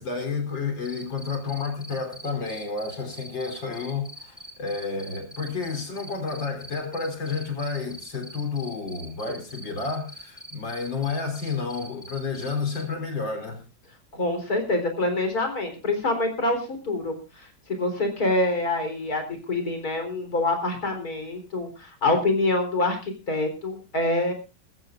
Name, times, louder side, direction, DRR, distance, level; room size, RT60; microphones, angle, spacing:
voice 1, 0.0-13.6, left 4 dB, 75° left, 4.4 m, -31 dB
Cricket, 0.8-12.8, equal, 5° left, 3.8 m, -43 dB
voice 2, 14.1-17.2 17.7-24.3, left 2 dB, 50° left, 4.5 m, -26 dB
21.5 x 14.5 x 2.5 m
omnidirectional pair, 2.0 m